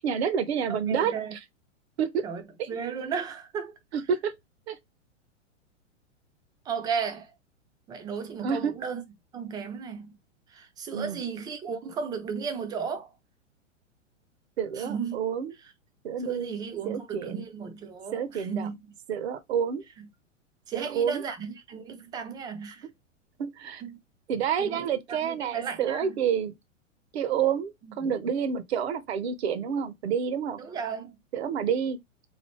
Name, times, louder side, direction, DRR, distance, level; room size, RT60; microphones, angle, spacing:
voice 1, 0.0-1.1 2.0-2.2 2.6-2.7 4.1-4.3 4.7-4.8 8.4-8.7 10.9-11.2 14.6-15.5 16.0-16.6 16.9-17.5 18.1-18.7 19.1-19.8 20.7-21.2 23.4-23.8 24.3-26.5 27.1-30.6 31.3-32.0, right 7 dB, 55° right, 0.8 m, -28 dB
voice 2, 0.7-1.3 2.2-3.7 6.7-7.3 7.9-9.0 9.3-10.2 10.5-13.1 14.7-15.2 15.6-15.7 16.2-18.8 20.0-20.1 20.7-22.9 23.8-24.0 24.6-26.2 27.8-27.9 30.6-31.1, right 6 dB, 10° right, 0.5 m, -35 dB
3.9 x 3.2 x 3.1 m
figure-of-eight pair, 105°, 38 cm